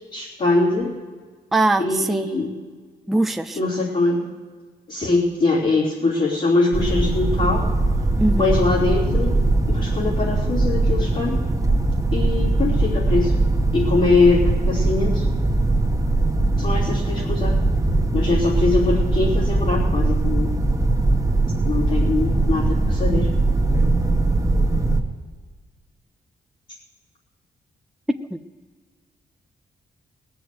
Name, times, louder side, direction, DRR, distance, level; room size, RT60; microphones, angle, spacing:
voice 1, 0.1-0.9 1.8-2.5 3.6-4.2 4.9-7.6 8.4-9.3 9.7-11.4 12.1-13.3 13.7-15.3 16.6-17.6 18.1-20.5 21.6-23.3, left 3 dB, 55° left, -9 dB, 3.4 m, -22 dB
voice 2, 1.5-2.3 3.1-3.6 8.2-8.6 28.3-28.4, right 2 dB, ahead, 6 dB, 0.5 m, -21 dB
sound 1, 6.7-25.0, right 2 dB, 20° right, 1.3 m, -20 dB
19.0 x 6.9 x 7.8 m, 1.5 s
cardioid pair, 95°, 18 cm